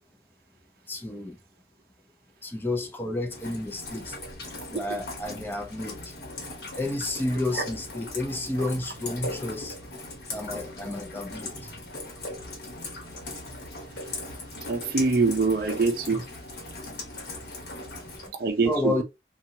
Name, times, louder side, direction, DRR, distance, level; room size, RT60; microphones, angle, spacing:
voice 1, 0.9-1.4 2.4-4.2 4.7-6.1 6.8-9.7 10.3-11.5 16.1-16.2 18.6-19.0, left 2 dB, 10° left, 0.4 m, -31 dB
Rain, 3.3-18.3, left 2 dB, 65° left, 1.0 m, -39 dB
voice 2, 14.7-16.2 18.4-18.9, right 4 dB, 55° right, 0.5 m, -24 dB
2.6 x 2.3 x 2.7 m
head